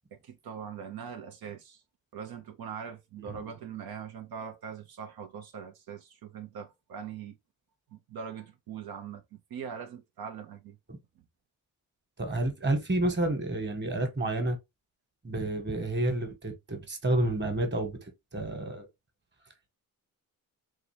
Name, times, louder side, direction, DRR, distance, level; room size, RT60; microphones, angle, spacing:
voice 1, 0.1-1.8 2.1-7.4 7.9-9.2 9.5-10.8, right 7 dB, 80° right, 0.8 m, -41 dB
voice 2, 12.2-14.6 15.2-18.9, right 2 dB, 30° right, 1.4 m, -30 dB
3.8 x 3.1 x 3.3 m
cardioid pair, 90°, 36 cm